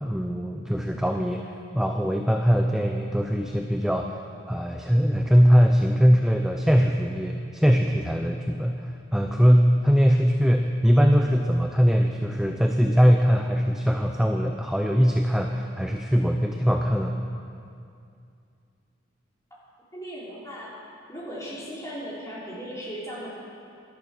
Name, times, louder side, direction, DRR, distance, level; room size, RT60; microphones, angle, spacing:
voice 1, 0.0-1.4 1.7-4.1 4.5-17.2, equal, ahead, 3 dB, 0.5 m, -21 dB
voice 2, 19.9-20.7 21.1-23.3, equal, 15° left, -7 dB, 3.8 m, -37 dB
17.5 x 12.0 x 6.0 m, 2.5 s
head